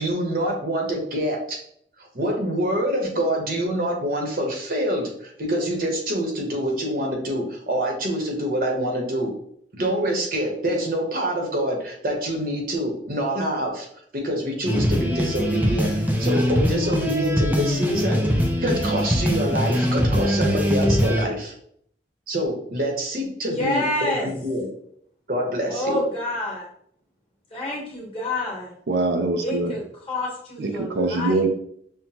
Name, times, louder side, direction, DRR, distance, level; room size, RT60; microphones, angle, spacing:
voice 1, 0.0-1.6 2.1-9.3 9.7-13.9 14.1-15.9 16.2-18.2 18.6-21.5 22.3-24.7 25.3-26.0, equal, 55° right, 1 dB, 0.9 m, -26 dB
sound 1, 14.7-21.2, equal, 10° right, 0.4 m, -22 dB
voice 2, 23.5-24.3 25.7-26.6 27.5-28.7 29.4-29.8 30.1-31.5, left 1 dB, 30° left, -3 dB, 1.4 m, -27 dB
voice 3, 28.9-29.8 30.6-31.5, right 2 dB, 70° right, 5 dB, 0.4 m, -23 dB
5.7 x 2.1 x 2.8 m, 0.67 s
head